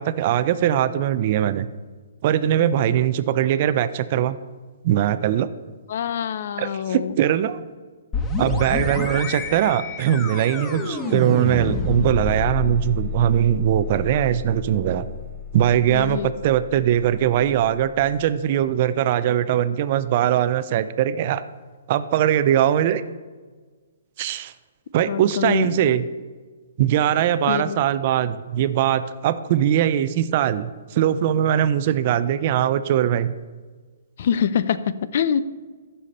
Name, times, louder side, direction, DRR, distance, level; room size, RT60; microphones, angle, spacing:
voice 1, 0.0-1.7 2.2-4.4 4.8-5.5 6.6-7.6 8.4-15.1 15.5-21.4 21.9-23.0 24.2-24.5 24.9-26.0 26.8-33.3, right 11 dB, 40° right, 13 dB, 0.4 m, -21 dB
voice 2, 5.9-7.2 15.9-16.4 25.1-25.9 27.5-27.8 34.2-35.4, left 8 dB, 55° left, 15 dB, 0.5 m, -25 dB
sound 1, 8.1-17.7, left 3 dB, 15° left, 0.9 m, -29 dB
14.5 x 5.6 x 4.2 m, 1.4 s
hypercardioid pair, 155°, 0 cm